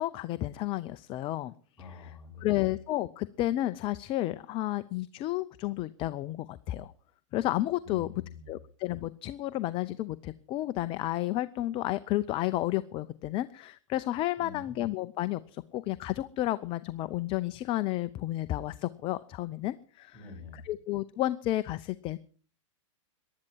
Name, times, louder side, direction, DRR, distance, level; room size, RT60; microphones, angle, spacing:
voice 1, 0.0-2.1 2.4-6.9 7.3-8.1 8.5-20.2 20.6-22.2, left 15 dB, 30° left, 14 dB, 0.6 m, -32 dB
voice 2, 1.8-2.7 7.8-8.5 14.4-14.8 20.1-20.7, left 4 dB, 10° left, 0 dB, 6.0 m, -46 dB
19.0 x 12.0 x 4.6 m, 0.41 s
hypercardioid pair, 120°, 17 cm